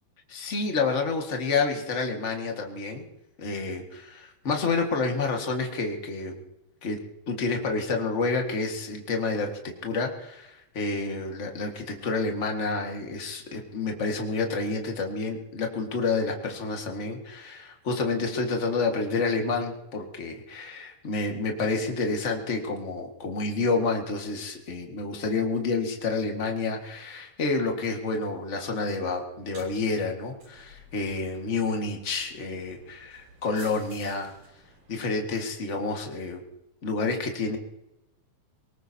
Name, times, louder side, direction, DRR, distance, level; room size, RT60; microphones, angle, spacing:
voice 1, 0.3-3.0 3.4-6.4 6.8-7.0 7.3-34.3 34.9-36.4 36.8-37.6, left 3 dB, 35° left, 2 dB, 1.2 m, -29 dB
sound 1, 29.3-35.7, right 2 dB, 65° right, 5.1 m, -54 dB
23.0 x 20.0 x 2.8 m, 0.91 s
omnidirectional pair, 3.8 m